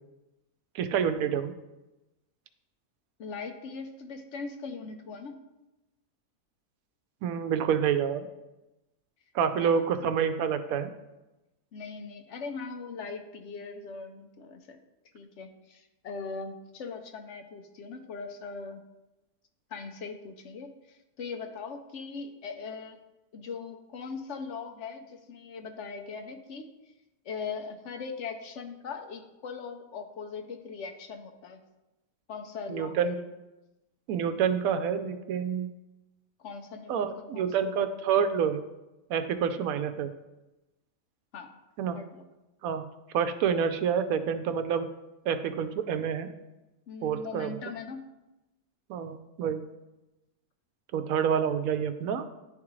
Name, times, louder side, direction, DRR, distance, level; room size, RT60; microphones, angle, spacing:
voice 1, 0.7-1.5 7.2-8.3 9.3-10.9 32.7-33.2 34.1-35.7 36.9-38.7 39.1-40.1 41.8-42.0 42.6-42.8 43.1-44.9 45.3-46.3 47.0-47.5 48.9-49.6 50.9-52.3, right 7 dB, 90° right, 10 dB, 1.0 m, -28 dB
voice 2, 3.2-5.4 9.6-9.9 11.7-14.8 15.1-18.8 19.7-23.0 23.3-26.7 27.2-31.6 32.3-33.3 36.4-37.5 41.3-41.5 41.9-42.3 46.9-48.1, left 5 dB, 65° left, 6 dB, 0.9 m, -40 dB
10.5 x 3.6 x 3.1 m, 0.99 s
omnidirectional pair, 1.4 m